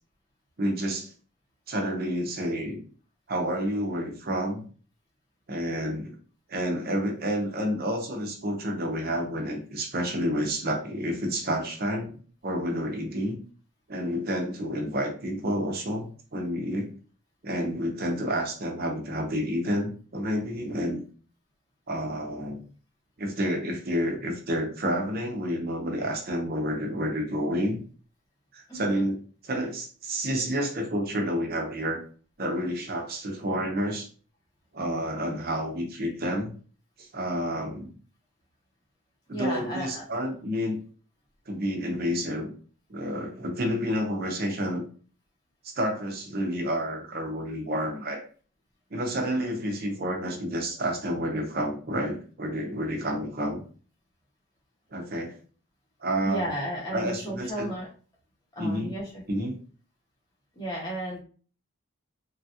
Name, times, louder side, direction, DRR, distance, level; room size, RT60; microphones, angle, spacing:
voice 1, 0.6-1.1 1.7-2.8 3.3-4.6 5.5-6.1 6.5-13.4 13.9-16.9 17.4-21.0 21.9-22.6 23.2-27.8 28.5-29.2 29.4-32.0 32.4-34.1 34.7-36.5 37.0-37.9 39.3-40.8 41.5-42.5 42.9-44.8 45.6-48.2 48.9-53.6 54.9-55.4 56.0-56.5 56.9-57.7 58.6-59.0 59.3-59.6, equal, 45° right, 2 dB, 0.7 m, -29 dB
voice 2, 28.7-29.1 39.3-40.0 56.2-57.9 58.5-59.2 60.5-61.2, right 1 dB, 20° left, -6 dB, 0.9 m, -33 dB
3.1 x 2.3 x 2.8 m, 0.41 s
head